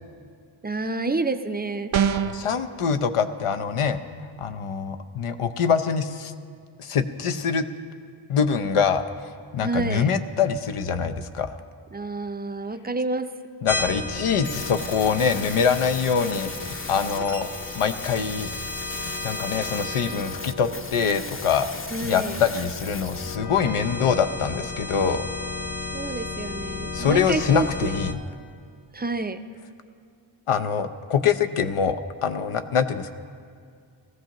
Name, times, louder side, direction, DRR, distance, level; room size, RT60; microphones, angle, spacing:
voice 1, 0.6-2.1 9.6-10.1 11.9-13.3 21.9-22.4 25.9-27.9 28.9-29.4, right 3 dB, 20° right, 8 dB, 0.5 m, -28 dB
sound 1, 1.9-2.5, right 8 dB, 70° right, 0.6 m, -22 dB
voice 2, 2.1-4.0 4.4-6.3 6.8-7.7 8.3-9.0 9.5-11.6 13.6-17.5 17.8-18.5 19.2-21.7 22.0-25.2 26.9-28.2 30.5-33.1, left 6 dB, 85° left, 9 dB, 0.7 m, -24 dB
sound 2, 13.7-28.1, left 3 dB, 50° left, 1.0 m, -34 dB
sound 3, 14.4-23.4, left 3 dB, 25° left, 0.6 m, -38 dB
18.0 x 14.5 x 2.9 m, 2.2 s
wide cardioid pair, 65°, 50 cm